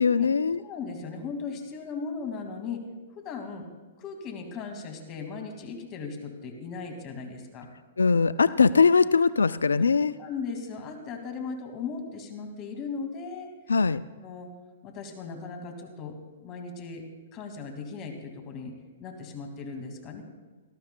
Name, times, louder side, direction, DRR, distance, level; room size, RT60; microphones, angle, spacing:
voice 1, 0.0-0.6 8.0-10.1 13.7-14.0, left 5 dB, 90° left, 16 dB, 0.3 m, -21 dB
voice 2, 0.6-2.8 3.2-3.7 4.0-7.7 9.8-9.9 10.2-13.7 14.2-14.5 14.8-17.0 17.3-18.7 19.0-20.2, left 5 dB, 35° left, 4 dB, 2.1 m, -37 dB
18.5 x 13.0 x 2.2 m, 1.3 s
hypercardioid pair, 125°, 0 cm